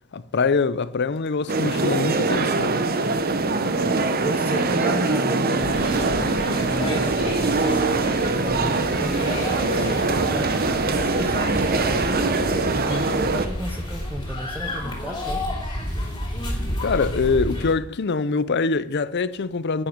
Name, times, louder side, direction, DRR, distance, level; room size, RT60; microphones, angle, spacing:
voice 1, 0.1-2.8 16.8-19.9, left 4 dB, 55° left, 0.6 m, -24 dB
sound 1, 1.5-13.5, right 3 dB, 45° right, 0.9 m, -23 dB
voice 2, 4.2-6.3 6.6-7.8 8.4-12.2 12.7-15.4, equal, 10° right, 1.0 m, -33 dB
sound 2, 5.6-17.7, left 1 dB, 20° left, 2.9 m, -31 dB
11.5 x 8.8 x 5.1 m
head